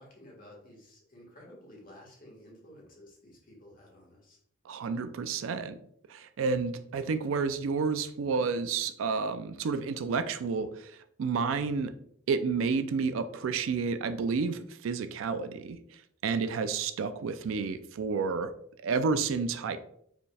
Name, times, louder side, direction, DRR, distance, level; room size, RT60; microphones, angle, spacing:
voice 1, 0.0-4.4 16.4-16.6, left 1 dB, 45° left, -2 dB, 1.4 m, -53 dB
voice 2, 4.7-5.8 6.1-10.9 11.2-11.9 12.3-15.8 16.2-18.5 18.8-19.8, right 5 dB, 85° right, 11 dB, 0.4 m, -30 dB
5.0 x 3.3 x 2.3 m, 0.67 s
head